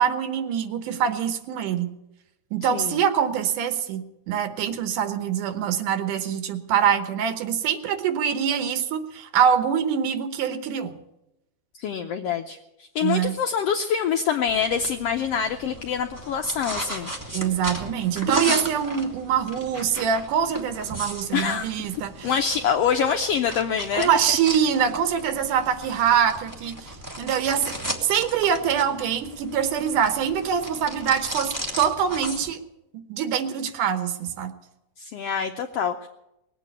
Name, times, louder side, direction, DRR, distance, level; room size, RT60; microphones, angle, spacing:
voice 1, 0.0-1.9 2.5-10.9 13.0-13.3 17.3-22.3 23.9-27.7 28.0-32.6 33.1-34.5, right 8 dB, 85° right, 9 dB, 2.6 m, -24 dB
voice 2, 11.7-17.1 21.3-21.7 22.2-24.1 35.0-36.1, left 7 dB, 85° left, 5 dB, 1.4 m, -25 dB
sound 1, 14.5-32.5, right 1 dB, 15° right, 0.6 m, -36 dB
19.5 x 8.3 x 8.2 m, 0.89 s
omnidirectional pair, 3.6 m